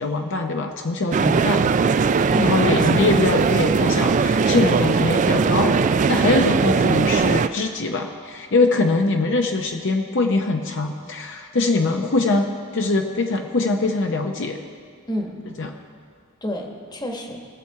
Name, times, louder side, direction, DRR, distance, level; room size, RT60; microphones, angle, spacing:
voice 1, 0.0-1.8 2.4-14.6 15.6-15.7, left 3 dB, 60° left, 3 dB, 0.7 m, -22 dB
sound 1, 1.1-7.5, right 5 dB, 35° right, 0.3 m, -19 dB
voice 2, 2.3-3.0 15.1-15.4 16.4-17.4, left 1 dB, 20° left, 2 dB, 1.2 m, -29 dB
20.5 x 7.1 x 4.6 m, 2.1 s
head